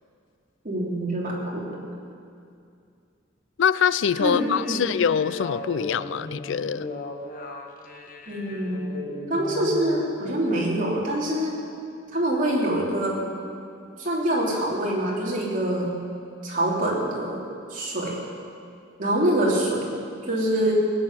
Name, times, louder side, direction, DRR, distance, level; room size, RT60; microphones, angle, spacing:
voice 1, 0.6-1.7 4.2-4.9 8.3-8.9 9.3-11.5 12.1-13.3 14.0-15.9 16.4-17.4 17.7-18.2 19.0-19.9 20.3-20.8, right 1 dB, 45° right, -4 dB, 3.3 m, -25 dB
voice 2, 3.6-6.9, left 7 dB, 65° left, 17 dB, 0.4 m, -24 dB
sound 1, 3.9-10.6, left 2 dB, 45° left, 1.7 m, -37 dB
18.5 x 9.6 x 7.7 m, 2.4 s
head